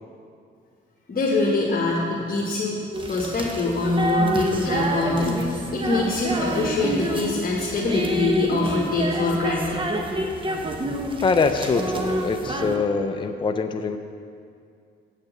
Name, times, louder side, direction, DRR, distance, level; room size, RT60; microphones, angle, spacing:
voice 1, 1.1-2.8 3.1-9.8, left 2 dB, 50° left, -5 dB, 1.5 m, -24 dB
sound 1, 2.9-12.8, right 1 dB, 25° right, 1.0 m, -28 dB
voice 2, 11.2-14.0, left 4 dB, 25° left, 7 dB, 0.5 m, -23 dB
8.3 x 6.6 x 7.1 m, 2.3 s
cardioid pair, 90°, 20 cm